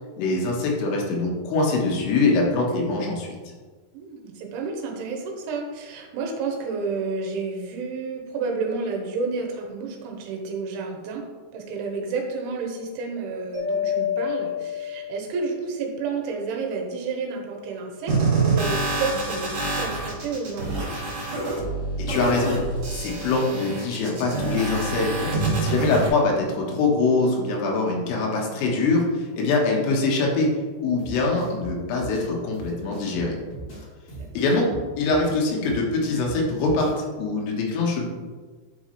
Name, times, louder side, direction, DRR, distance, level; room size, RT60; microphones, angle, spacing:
voice 1, 0.2-3.4 22.1-22.6 22.9-25.3 25.6-29.0 29.4-30.5 30.8-33.4 34.4-34.7 35.0-38.1, left 3 dB, 80° left, -1 dB, 3.9 m, -23 dB
voice 2, 3.9-11.3 11.5-20.9 34.2-34.5, right 4 dB, 75° right, 1 dB, 3.3 m, -30 dB
Mallet percussion, 13.5-15.6, left 8 dB, 45° right, 2.6 m, -28 dB
sound 1, 18.1-26.1, right 3 dB, 60° right, 1.5 m, -26 dB
sound 2, 31.0-37.0, right 2 dB, 50° left, 2.0 m, -40 dB
11.0 x 5.3 x 3.2 m, 1.4 s
omnidirectional pair, 5.8 m